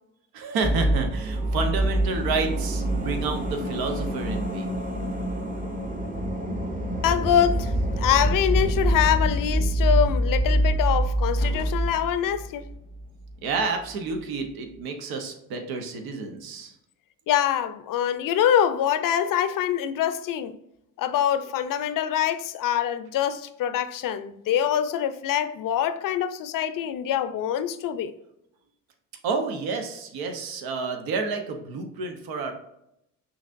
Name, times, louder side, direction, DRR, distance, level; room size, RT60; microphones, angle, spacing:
voice 1, 0.3-4.7 13.4-16.7 29.2-32.5, right 4 dB, 80° right, 0.9 m, -30 dB
sound 1, 0.6-13.0 13.3-13.4, right 1 dB, 20° right, 0.8 m, -25 dB
voice 2, 7.0-12.6 17.3-20.6 21.0-28.1, left 10 dB, 65° left, 0.5 m, -24 dB
5.9 x 2.8 x 2.5 m
supercardioid pair, 70°, 36 cm